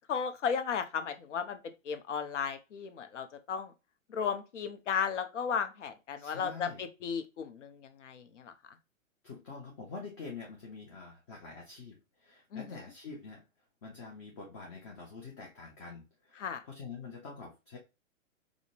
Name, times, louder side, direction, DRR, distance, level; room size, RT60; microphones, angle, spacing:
voice 1, 0.1-1.6 1.9-3.7 4.1-8.5 12.5-12.7 16.4-16.6, left 7 dB, 65° left, 8 dB, 0.7 m, -35 dB
voice 2, 6.2-6.8 9.2-11.9 12.2-13.4 13.8-17.8, left 4 dB, 25° left, -1 dB, 0.5 m, -46 dB
4.9 x 2.0 x 2.2 m, 0.27 s
figure-of-eight pair, 120°, 40 cm